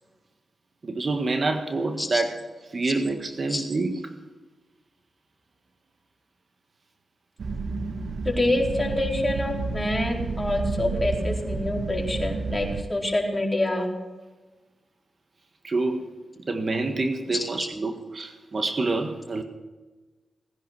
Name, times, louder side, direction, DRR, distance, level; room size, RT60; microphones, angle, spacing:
voice 1, 0.8-2.4 2.7-4.1 15.6-19.4, right 3 dB, 55° right, 6 dB, 1.6 m, -27 dB
sound 1, 7.4-12.8, right 4 dB, 70° right, 1.2 m, -30 dB
voice 2, 8.2-13.9 17.3-17.7, left 1 dB, 20° left, -1 dB, 4.4 m, -27 dB
18.5 x 10.5 x 6.2 m, 1.3 s
cardioid pair, 45°, 0 cm